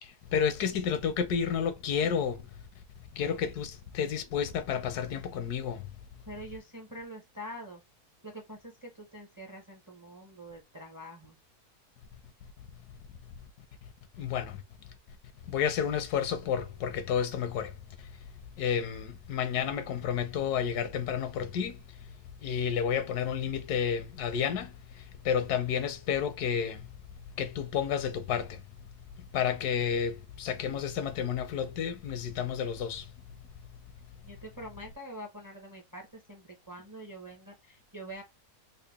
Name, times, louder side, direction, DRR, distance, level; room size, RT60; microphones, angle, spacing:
voice 1, 0.0-2.5 3.1-5.9 14.2-14.6 15.5-17.7 18.6-22.1 22.4-27.0 27.4-28.6 29.2-33.1, left 8 dB, 80° left, 1.2 m, -31 dB
voice 2, 6.3-7.8 8.2-11.4 34.2-38.2, equal, 20° right, 0.5 m, -45 dB
3.7 x 2.2 x 3.5 m
omnidirectional pair, 1.7 m